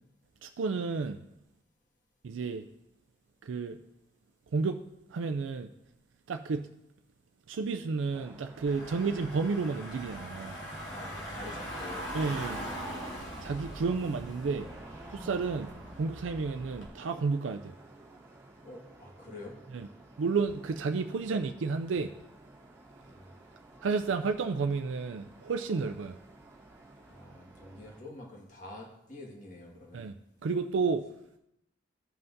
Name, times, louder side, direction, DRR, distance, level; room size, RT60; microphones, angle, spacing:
voice 1, 0.4-1.2 2.2-2.7 3.4-3.8 4.5-4.8 5.1-5.7 6.3-6.7 7.5-10.6 12.1-12.6 13.4-14.7 15.1-17.7 19.7-19.9 20.2-22.1 23.8-26.2 29.9-30.1 30.4-31.1, right 4 dB, 85° right, 8 dB, 0.4 m, -31 dB
sound 1, 8.1-28.0, right 2 dB, 15° right, 1.4 m, -53 dB
Car / Engine, 8.7-16.9, equal, 80° left, 2.0 m, -41 dB
voice 2, 10.9-12.1 18.6-19.6 23.0-23.3 27.1-30.0, left 2 dB, 40° left, -1 dB, 1.8 m, -47 dB
15.5 x 5.6 x 2.7 m, 0.83 s
head